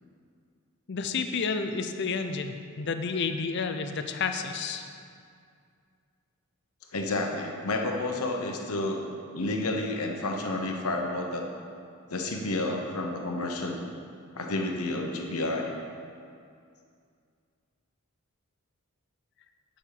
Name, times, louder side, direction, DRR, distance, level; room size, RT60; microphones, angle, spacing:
voice 1, 0.9-4.9, left 5 dB, 50° left, 7 dB, 0.5 m, -30 dB
voice 2, 6.9-9.0 9.3-11.5 12.1-13.8 14.3-15.8, left 2 dB, 80° left, 2 dB, 1.1 m, -30 dB
10.0 x 5.6 x 6.6 m, 2.3 s
head